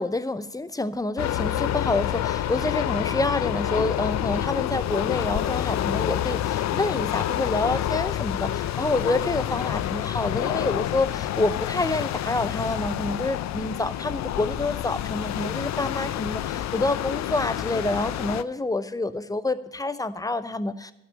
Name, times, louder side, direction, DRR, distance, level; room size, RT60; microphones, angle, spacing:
voice 1, 0.0-20.9, left 2 dB, 10° left, 13 dB, 0.7 m, -28 dB
sound 1, 1.2-18.4, left 12 dB, 65° left, 0.5 m, -28 dB
12.5 x 5.5 x 8.9 m, 0.90 s
hypercardioid pair, 40°, 30 cm